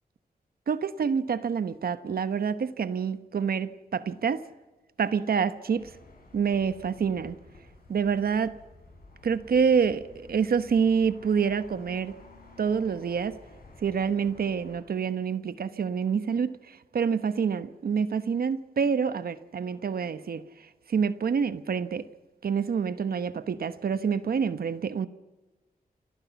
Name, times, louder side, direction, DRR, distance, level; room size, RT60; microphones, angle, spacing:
voice 1, 0.7-4.4 5.0-5.9 6.3-7.4 7.9-8.5 9.2-12.2 12.6-13.4 13.8-20.4 20.9-22.1 22.4-25.1, right 6 dB, 80° right, 1.1 m, -27 dB
sound 1, 5.7-14.8, left 2 dB, 70° left, 6.8 m, -53 dB
Telephone, 6.5-14.6, left 2 dB, 40° left, 6.1 m, -59 dB
27.5 x 14.5 x 7.1 m
wide cardioid pair, 155°, 15 cm